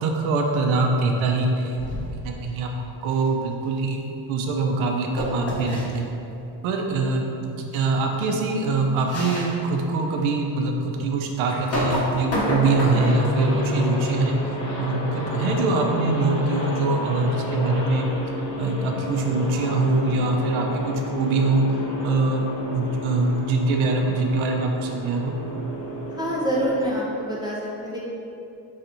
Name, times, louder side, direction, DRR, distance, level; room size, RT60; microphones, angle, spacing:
voice 1, 0.0-2.7 3.0-4.0 4.3-6.1 6.6-14.3 14.8-18.1 18.6-21.6 22.0-25.3, right 3 dB, 85° right, 2 dB, 0.6 m, -23 dB
sound 1, 1.8-2.3 5.2-5.9 7.7-7.8 8.2-8.4 9.1-9.5 10.1-10.2 11.5-13.2, left 1 dB, 30° left, 0.9 m, -27 dB
sound 2, 12.8-26.9, left 2 dB, 55° left, 1.0 m, -30 dB
voice 2, 26.1-28.0, equal, 10° right, -5 dB, 0.4 m, -26 dB
3.2 x 2.6 x 4.2 m, 2.8 s
cardioid pair, 90°, 47 cm